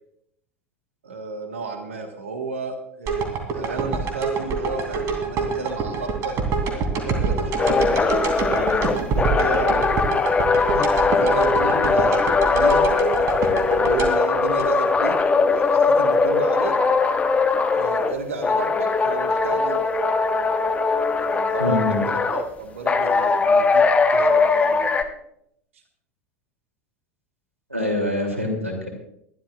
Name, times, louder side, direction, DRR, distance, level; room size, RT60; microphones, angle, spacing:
voice 1, 1.0-7.8 8.5-9.9 10.7-13.3 13.7-16.7 17.7-19.8 21.3-25.2 27.8-28.3, right 3 dB, 70° right, 6 dB, 1.5 m, -32 dB
sound 1, 3.1-15.2 15.7-15.8, right 5 dB, 40° right, 2.8 m, -26 dB
sound 2, 7.6-18.1 18.4-22.4 22.9-25.0, left 4 dB, 20° left, 1.1 m, -20 dB
voice 2, 21.6-22.0 27.7-28.9, left 1 dB, 90° right, 2 dB, 2.9 m, -24 dB
23.5 x 12.0 x 2.5 m, 0.72 s
figure-of-eight pair, 75°, 7 cm